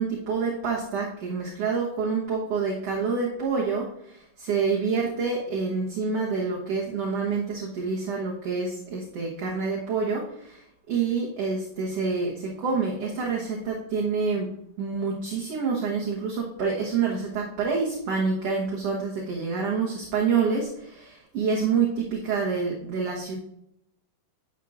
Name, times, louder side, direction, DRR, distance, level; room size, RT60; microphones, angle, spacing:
voice 1, 0.0-3.9 4.4-10.6 10.9-14.5 14.8-23.4, right 5 dB, 60° right, -3 dB, 1.7 m, -27 dB
10.0 x 9.0 x 2.5 m, 0.77 s
omnidirectional pair, 4.1 m